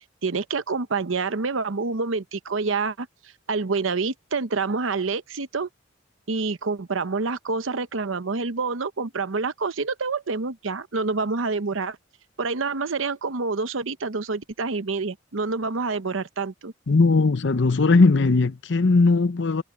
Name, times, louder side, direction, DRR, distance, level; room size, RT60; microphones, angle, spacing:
voice 1, 0.2-3.1 3.5-5.7 6.3-12.0 12.4-16.7, right 4 dB, 90° right, 0.9 m, -27 dB
voice 2, 16.9-19.6, left 3 dB, 65° left, 0.7 m, -18 dB
head